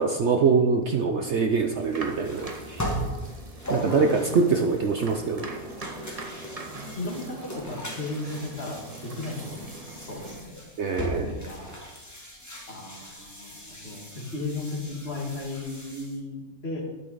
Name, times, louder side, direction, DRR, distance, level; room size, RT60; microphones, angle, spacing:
voice 1, 0.0-2.9 3.7-5.6 10.8-11.4, right 5 dB, 60° right, 4 dB, 0.8 m, -24 dB
sound 1, 1.5-16.2, equal, 10° left, 1.5 m, -39 dB
sound 2, 1.8-10.4, right 2 dB, 25° right, 1.0 m, -42 dB
voice 2, 3.7-4.4 6.9-10.6 11.1-11.7 12.7-16.8, left 2 dB, 45° left, 1 dB, 1.8 m, -35 dB
11.0 x 8.9 x 4.0 m, 1.2 s
omnidirectional pair, 1.6 m